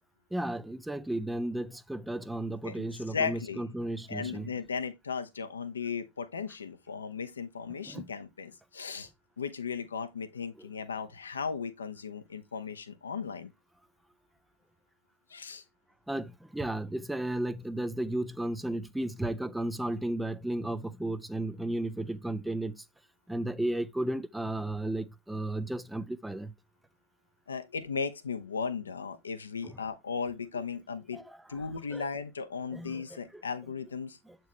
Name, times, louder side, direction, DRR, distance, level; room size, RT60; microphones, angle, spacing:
voice 1, 0.3-4.5 7.8-8.1 16.1-22.8 23.3-26.5 31.1-31.4 31.9-32.0 32.7-33.4 34.3-34.4, right 1 dB, 5° right, 0.5 m, -34 dB
voice 2, 2.6-3.6 4.1-9.1 9.4-13.5 15.3-15.6 27.5-34.2, left 5 dB, 70° left, 0.9 m, -36 dB
8.1 x 4.6 x 3.1 m
figure-of-eight pair, 90°, 0 cm